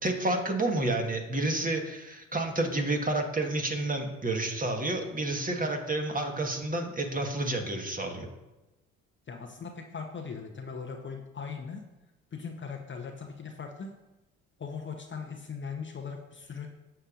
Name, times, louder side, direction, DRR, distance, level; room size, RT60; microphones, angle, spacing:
voice 1, 0.0-8.3, right 2 dB, 20° right, 3 dB, 1.4 m, -30 dB
voice 2, 9.3-11.8 12.3-13.9 14.6-16.7, left 5 dB, 30° left, 3 dB, 0.8 m, -39 dB
8.9 x 6.8 x 2.5 m, 1.0 s
hypercardioid pair, 50°, 39 cm